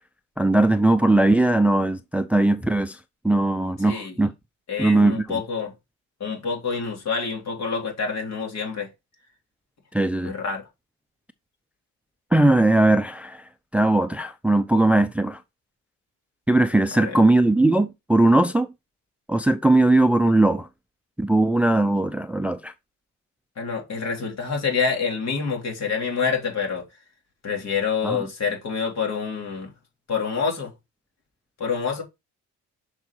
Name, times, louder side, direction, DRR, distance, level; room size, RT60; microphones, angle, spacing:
voice 1, 0.4-3.0 3.2-4.3 4.8-5.2 9.9-10.3 12.3-13.4 13.7-15.4 16.5-18.7 19.3-20.7 21.2-22.7 28.0-28.2, right 2 dB, 5° right, 0.5 m, -19 dB
voice 2, 3.8-4.2 4.7-5.7 6.2-8.9 10.2-10.6 16.9-17.2 23.6-26.8 27.4-29.7 30.1-30.7 31.6-32.0, left 5 dB, 60° left, 3.3 m, -27 dB
7.0 x 4.8 x 4.4 m
cardioid pair, 90°, 30 cm